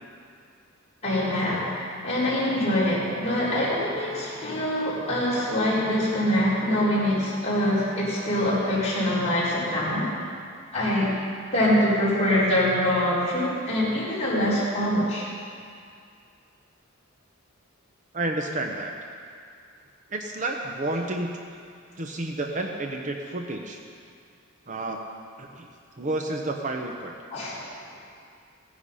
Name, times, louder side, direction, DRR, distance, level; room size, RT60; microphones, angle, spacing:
voice 1, 1.0-10.1 10.7-11.2 11.5-15.2 27.3-27.6, left 1 dB, 30° left, -9 dB, 4.3 m, -24 dB
voice 2, 18.1-18.9 20.1-21.5 22.0-23.8 24.7-25.0 25.4-25.7 26.0-27.1, right 2 dB, 35° right, 2 dB, 0.8 m, -30 dB
16.0 x 10.0 x 5.6 m, 2.3 s
head